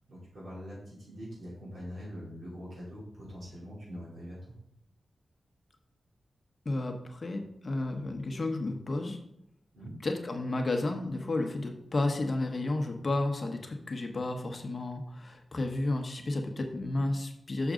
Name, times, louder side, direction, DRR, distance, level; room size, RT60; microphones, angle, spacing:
voice 1, 0.1-4.4 9.7-9.9, equal, 75° right, -7 dB, 3.0 m, -43 dB
voice 2, 6.6-9.2 10.0-17.7, left 2 dB, 40° left, 4 dB, 0.9 m, -32 dB
6.2 x 6.0 x 3.7 m, 0.76 s
wide cardioid pair, 100°, 0 cm